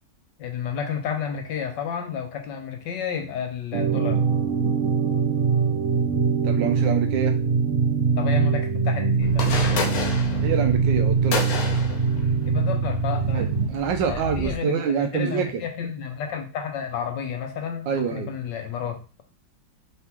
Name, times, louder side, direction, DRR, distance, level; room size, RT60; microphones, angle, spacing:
voice 1, 0.4-4.2 8.2-9.9 12.5-13.5 14.1-19.0, left 7 dB, 80° left, 4 dB, 1.4 m, -31 dB
sound 1, 3.7-13.7, right 5 dB, 60° right, 0.9 m, -22 dB
voice 2, 6.4-7.4 10.4-11.6 13.3-15.5 17.9-18.3, right 7 dB, 85° right, 6 dB, 1.4 m, -26 dB
sound 2, 9.2-14.5, left 4 dB, 65° left, 1.1 m, -31 dB
4.0 x 3.5 x 2.9 m, 0.36 s
omnidirectional pair, 1.9 m